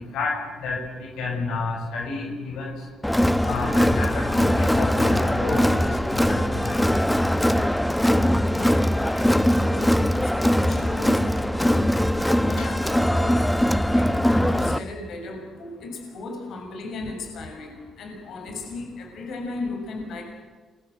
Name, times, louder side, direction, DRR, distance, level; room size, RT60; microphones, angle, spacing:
voice 1, 0.6-2.7 3.4-5.9 6.3-6.8 12.6-12.7, left 3 dB, 85° left, 1 dB, 6.8 m, -30 dB
Crowd, 3.0-14.8, equal, 5° left, 1.1 m, -21 dB
voice 2, 8.5-11.9 12.4-13.5 13.9-20.2, left 3 dB, 70° left, 3 dB, 6.8 m, -36 dB
28.0 x 23.5 x 8.1 m, 1.4 s
cardioid pair, 90°, 0 cm